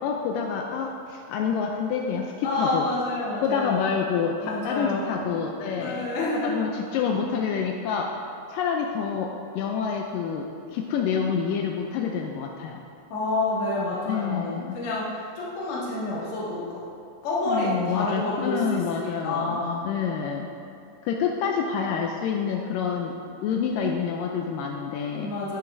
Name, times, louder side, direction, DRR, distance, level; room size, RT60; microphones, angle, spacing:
voice 1, 0.0-2.9 3.4-6.0 6.4-8.1 8.5-9.3 9.6-12.8 13.8-14.8 17.5-19.6 19.8-20.5 21.0-23.1 23.4-25.3, left 6 dB, 85° left, 1 dB, 1.9 m, -27 dB
voice 2, 2.4-3.9 4.4-5.3 5.7-6.7 13.1-16.8 17.2-19.9 25.2-25.6, left 2 dB, 45° left, -8 dB, 2.3 m, -29 dB
9.8 x 9.7 x 2.6 m, 2.6 s
omnidirectional pair, 4.4 m